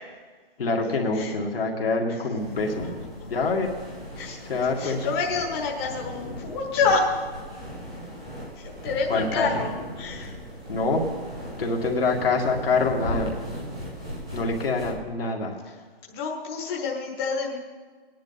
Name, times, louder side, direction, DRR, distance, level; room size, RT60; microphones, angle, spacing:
voice 1, 0.6-2.9 3.3-3.7 4.5-5.1 9.1-9.6 10.7-11.1 11.6-13.3 14.3-15.6, left 3 dB, 70° left, 0 dB, 2.3 m, -25 dB
sound 1, 2.3-14.9, equal, 5° right, 0.4 m, -37 dB
voice 2, 4.8-7.1 8.5-10.3 16.1-17.6, left 4 dB, 25° left, -1 dB, 1.3 m, -28 dB
18.0 x 10.5 x 4.1 m, 1.5 s
hypercardioid pair, 155°, 30 cm